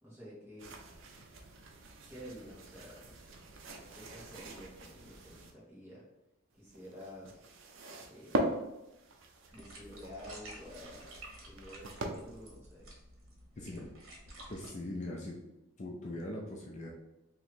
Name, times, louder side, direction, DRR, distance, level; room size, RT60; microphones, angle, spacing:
voice 1, 0.0-0.7 2.1-3.2 3.9-6.1 6.5-7.5 8.1-8.5 9.5-12.9 13.6-13.8, equal, 10° right, -8 dB, 1.4 m, -50 dB
sound 1, 0.6-5.5 6.5-12.5, right 1 dB, 60° right, 0.5 m, -42 dB
sound 2, 9.5-14.7, right 1 dB, 80° right, 1.2 m, -52 dB
voice 2, 13.6-13.9 14.5-15.4 15.8-16.9, left 1 dB, 35° left, -1 dB, 0.4 m, -41 dB
2.9 x 2.8 x 4.3 m, 0.94 s
head